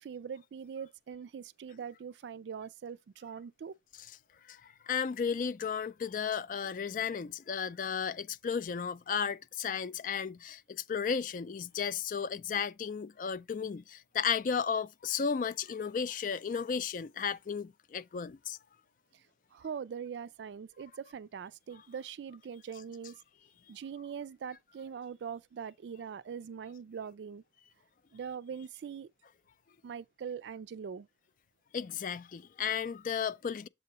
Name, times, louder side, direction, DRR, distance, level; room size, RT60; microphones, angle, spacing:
voice 1, 0.0-3.7 19.5-23.2 23.7-27.4 28.1-29.1 29.8-31.1, right 7 dB, 80° right, 0.3 m, -42 dB
voice 2, 4.5-18.6 31.7-33.7, left 6 dB, 45° left, 0.3 m, -34 dB
7.4 x 2.9 x 5.4 m
head